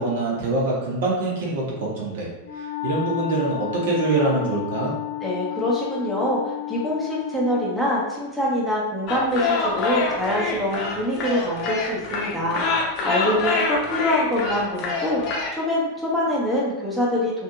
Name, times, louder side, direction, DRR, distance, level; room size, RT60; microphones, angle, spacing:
voice 1, 0.0-2.3 2.6-4.9, right 2 dB, 55° right, -4 dB, 0.8 m, -24 dB
Wind instrument woodwind instrument, 2.4-7.8, left 14 dB, 85° left, 0.5 m, -32 dB
voice 2, 5.2-15.2 15.5-17.4, left 1 dB, 5° right, -6 dB, 0.8 m, -25 dB
sound 1, 9.1-15.5, left 4 dB, 40° left, 0.7 m, -26 dB
2.8 x 2.5 x 2.3 m, 0.99 s
figure-of-eight pair, 90°, 0 cm